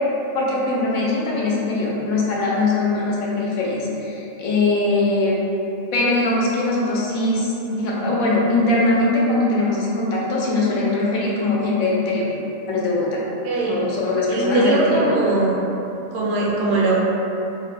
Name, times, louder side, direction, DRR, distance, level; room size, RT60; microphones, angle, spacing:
voice 1, 0.3-5.4 5.9-12.3 12.7-13.2 13.6-15.0, left 2 dB, 80° left, -4 dB, 1.0 m, -21 dB
voice 2, 13.4-13.8 14.3-15.7 16.1-16.9, right 2 dB, 70° right, -5 dB, 0.9 m, -20 dB
2.7 x 2.1 x 3.2 m, 2.9 s
omnidirectional pair, 1.4 m